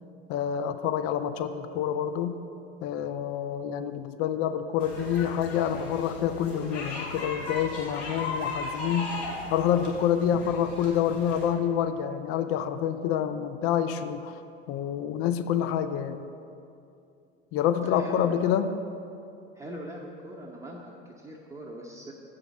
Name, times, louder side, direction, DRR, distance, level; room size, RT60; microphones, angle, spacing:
voice 1, 0.3-2.4 2.8-9.2 9.5-14.3 14.7-16.2 17.5-18.7, left 9 dB, 45° left, 10 dB, 0.5 m, -27 dB
sound 1, 4.8-11.5, left 2 dB, 70° left, 2.2 m, -37 dB
voice 2, 17.8-18.6 19.5-22.1, right 1 dB, 10° right, -3 dB, 0.8 m, -41 dB
7.1 x 5.0 x 7.1 m, 2.6 s
figure-of-eight pair, 75°, 32 cm